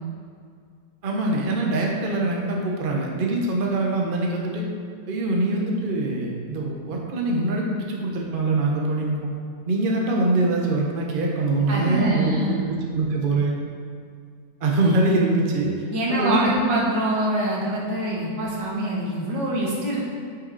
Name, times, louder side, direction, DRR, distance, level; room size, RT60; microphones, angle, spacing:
voice 1, 1.0-4.6 5.1-9.3 9.7-13.5 14.6-15.8 16.1-16.7, right 2 dB, 35° right, -1 dB, 1.0 m, -23 dB
voice 2, 11.7-12.6 15.9-20.1, right 1 dB, 80° right, -4 dB, 2.2 m, -25 dB
8.6 x 5.8 x 4.1 m, 2.2 s
omnidirectional pair, 1.9 m